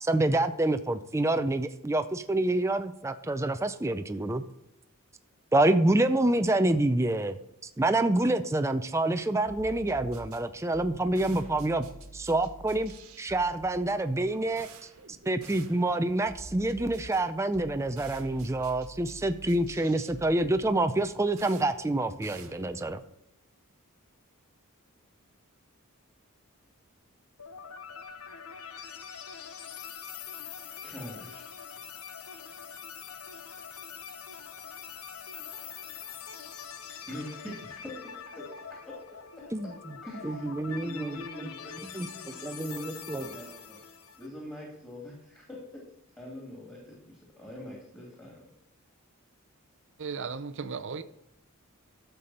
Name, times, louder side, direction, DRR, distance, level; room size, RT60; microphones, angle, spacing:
voice 1, 0.0-4.4 5.5-7.4 7.6-11.9 12.1-12.9 13.2-14.7 15.3-23.0 39.5-39.7 40.2-41.2 41.9-42.1 42.4-43.3, right 2 dB, 15° right, 0.4 m, -27 dB
sound 1, 9.5-23.1, right 2 dB, 85° right, 1.6 m, -48 dB
sound 2, 27.4-44.3, left 7 dB, 80° left, 0.8 m, -44 dB
voice 2, 30.8-31.5 37.0-39.7 40.0-43.8 44.2-45.8 46.2-48.4, equal, 10° left, 2.6 m, -44 dB
voice 3, 50.0-51.0, right 5 dB, 60° right, 0.6 m, -35 dB
12.5 x 6.9 x 4.3 m
head